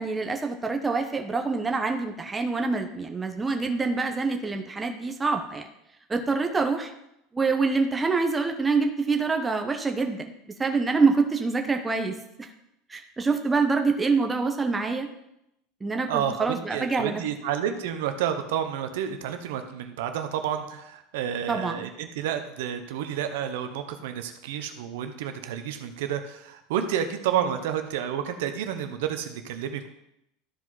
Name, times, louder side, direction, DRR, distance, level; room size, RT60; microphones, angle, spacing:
voice 1, 0.0-5.7 6.1-6.9 7.3-12.2 12.9-15.1 15.8-17.2 21.5-21.9, right 4 dB, 15° right, 4 dB, 1.0 m, -26 dB
voice 2, 16.1-29.9, right 9 dB, 75° right, 8 dB, 1.0 m, -30 dB
13.0 x 4.9 x 4.0 m, 0.83 s
supercardioid pair, 100°, 0 cm